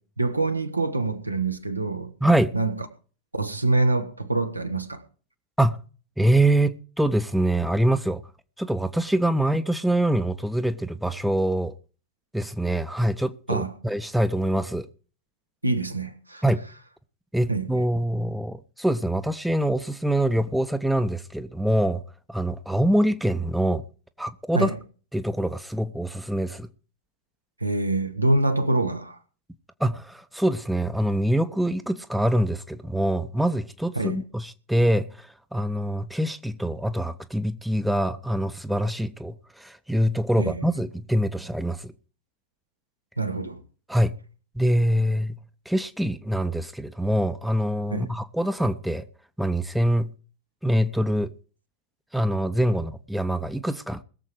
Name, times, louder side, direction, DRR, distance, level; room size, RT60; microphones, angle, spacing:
voice 1, 0.2-2.1 2.5-2.7 3.3-5.0 13.5-13.7 15.6-16.4 17.5-17.7 24.5-24.7 27.6-29.2 33.9-34.2 40.4-40.6 43.2-43.6 47.9-48.1, right 2 dB, 85° right, 1.6 m, -25 dB
voice 2, 2.2-2.5 5.6-5.8 6.2-8.2 8.6-11.7 12.3-14.9 16.4-16.6 17.3-22.0 22.3-23.8 24.2-24.8 25.1-26.7 29.8-41.9 43.9-44.1 44.5-45.4 45.7-49.0 49.4-50.1 50.6-51.3 52.1-54.0, right 1 dB, ahead, 0.9 m, -24 dB
20.5 x 7.5 x 4.8 m
figure-of-eight pair, 90°, 0 cm